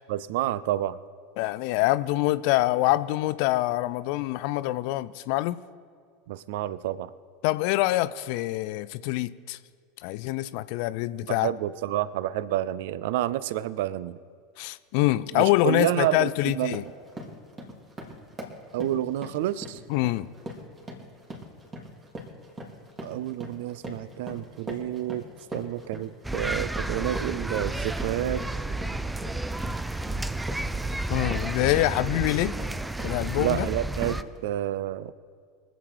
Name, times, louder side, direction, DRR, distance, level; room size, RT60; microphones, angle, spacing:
voice 1, 0.1-1.0 6.3-7.1 11.3-14.2 15.3-16.8 18.7-19.8 23.0-25.2 25.5-28.4 33.4-35.1, right 13 dB, 60° right, 18 dB, 0.4 m, -29 dB
voice 2, 1.4-5.6 7.4-9.6 10.0-11.5 14.6-16.8 19.9-20.3 31.1-32.6 33.0-33.7, left 17 dB, 55° left, 16 dB, 0.4 m, -25 dB
sound 1, 15.0-15.2 15.6-16.0 16.4-33.6 34.0-34.4, equal, 25° right, 2.6 m, -41 dB
sound 2, 26.2-34.2, right 2 dB, 5° right, 0.5 m, -31 dB
23.5 x 8.1 x 4.7 m, 2.1 s
figure-of-eight pair, 75°, 0 cm